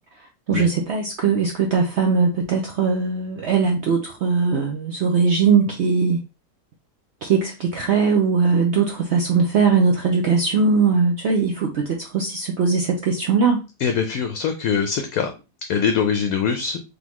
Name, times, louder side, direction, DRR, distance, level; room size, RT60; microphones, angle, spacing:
voice 1, 0.5-6.2 7.2-13.6, right 5 dB, 65° right, 2 dB, 0.6 m, -20 dB
voice 2, 13.8-15.3 15.7-16.8, left 6 dB, 70° left, 6 dB, 0.9 m, -22 dB
3.8 x 3.4 x 3.0 m, 0.29 s
omnidirectional pair, 1.7 m